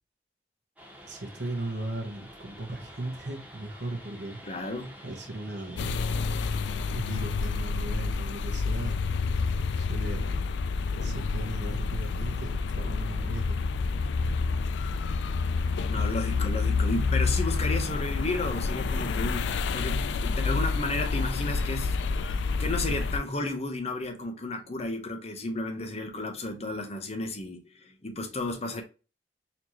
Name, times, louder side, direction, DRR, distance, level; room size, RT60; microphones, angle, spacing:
sound 1, 0.8-7.9, equal, 5° right, 1.4 m, -49 dB
voice 1, 1.0-4.4 5.0-5.9 6.9-9.0 9.4-10.4 11.0-13.6, right 2 dB, 70° right, 1.3 m, -37 dB
voice 2, 4.4-4.9 15.9-22.0 22.6-28.8, left 2 dB, 35° left, 0.8 m, -33 dB
sound 2, 5.8-23.2, left 4 dB, 75° left, 0.4 m, -28 dB
4.2 x 2.9 x 2.9 m
head